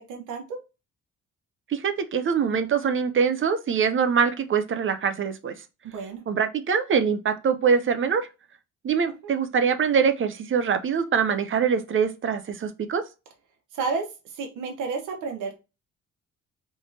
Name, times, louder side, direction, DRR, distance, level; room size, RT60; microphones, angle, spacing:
voice 1, 0.1-0.6 5.8-6.2 9.2-9.3 13.7-15.6, right 4 dB, 90° right, 1.0 m, -31 dB
voice 2, 1.7-5.5 6.3-8.3 8.8-13.0, right 6 dB, 40° right, 0.6 m, -23 dB
3.5 x 3.1 x 2.7 m
cardioid pair, 90°, 30 cm